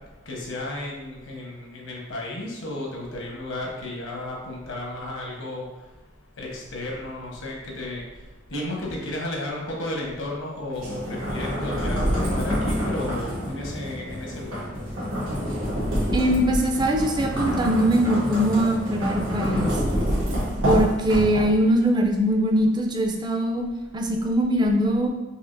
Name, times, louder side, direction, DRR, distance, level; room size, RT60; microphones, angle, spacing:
voice 1, 0.3-5.7 6.4-8.0 8.5-14.6, left 1 dB, 85° left, -2 dB, 1.1 m, -33 dB
sound 1, 10.7-21.7, equal, 85° right, 1.5 m, -27 dB
voice 2, 16.1-19.7 20.6-23.6 23.9-25.1, right 1 dB, 20° right, 2 dB, 0.4 m, -22 dB
4.9 x 2.8 x 2.6 m, 1.2 s
head